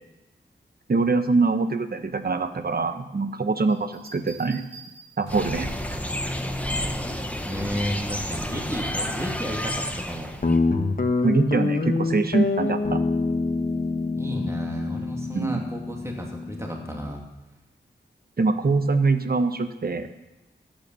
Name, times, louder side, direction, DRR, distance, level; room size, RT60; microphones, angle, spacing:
voice 1, 0.9-4.6 5.2-6.0 11.2-13.0 15.4-15.6 18.4-20.1, right 3 dB, 50° right, 9 dB, 1.1 m, -24 dB
sound 1, 3.7-5.6 7.2-7.6, right 4 dB, 85° right, 5.3 m, -48 dB
sound 2, 5.3-10.6, left 1 dB, 5° left, 1.2 m, -30 dB
voice 2, 7.5-10.3 14.2-17.2, equal, 15° right, 0 dB, 2.6 m, -32 dB
Guitar, 10.4-17.1, left 3 dB, 45° left, 1.3 m, -26 dB
14.0 x 9.2 x 5.5 m, 0.97 s
cardioid pair, 50°, 19 cm